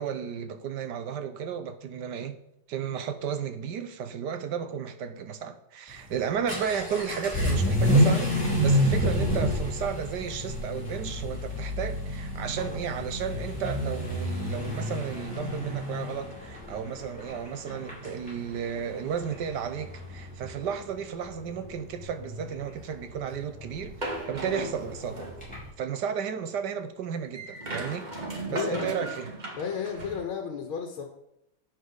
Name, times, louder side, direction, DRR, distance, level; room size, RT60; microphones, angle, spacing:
voice 1, 0.0-2.4 2.7-25.3 25.8-28.1 28.5-29.3, right 7 dB, 60° right, 1.4 m, -33 dB
Vehicle / Accelerating revving vroom, 5.9-25.7, equal, 5° left, 4.6 m, -30 dB
sound 1, 24.0-25.5 27.3-30.2, right 2 dB, 25° right, 1.4 m, -36 dB
voice 2, 28.5-28.9 29.6-31.0, left 6 dB, 80° left, 2.0 m, -33 dB
11.0 x 8.4 x 4.0 m
omnidirectional pair, 2.2 m